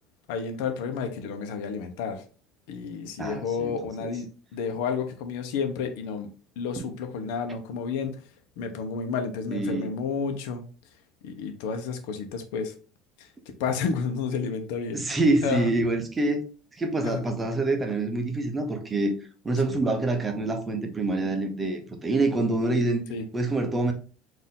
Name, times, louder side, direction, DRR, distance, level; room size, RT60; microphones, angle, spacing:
voice 1, 0.3-2.2 2.7-6.3 6.6-8.2 8.6-10.6 11.2-12.7 13.2-13.3 13.6-15.1 15.4-15.7 17.0-17.4 19.7-19.8 23.1-23.3, left 5 dB, 90° left, 0.8 m, -31 dB
voice 2, 3.2-3.7 4.0-4.1 6.8-6.9 9.5-9.9 14.9-16.4 16.8-19.1 19.4-23.0 23.3-23.9, right 2 dB, 15° right, 0.6 m, -26 dB
4.4 x 2.7 x 3.7 m
cardioid pair, 175°, 0 cm